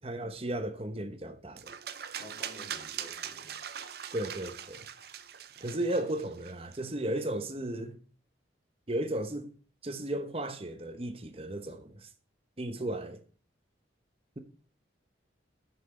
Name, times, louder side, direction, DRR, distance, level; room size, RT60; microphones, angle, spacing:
voice 1, 0.0-1.7 4.1-4.9 5.6-8.0 8.9-9.5 9.8-12.1 12.6-13.2, right 1 dB, 30° right, 0.9 m, -35 dB
sound 1, 1.6-6.8, right 9 dB, 55° right, 0.6 m, -42 dB
voice 2, 2.2-3.5 5.6-6.0 12.8-13.0, equal, 25° left, 3.4 m, -51 dB
9.9 x 5.9 x 4.2 m
head